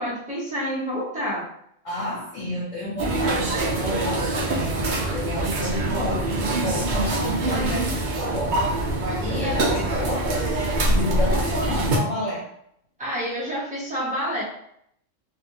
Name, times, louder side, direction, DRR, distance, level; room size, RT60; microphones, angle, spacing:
voice 1, 0.0-1.5 9.2-9.8 13.0-14.4, equal, 10° right, -6 dB, 0.6 m, -28 dB
voice 2, 1.8-8.6 9.3-12.5, left 1 dB, 75° left, -5 dB, 1.2 m, -31 dB
sound 1, 3.0-12.0, right 2 dB, 65° right, 0.4 m, -24 dB
2.6 x 2.4 x 2.6 m, 0.70 s
omnidirectional pair, 1.4 m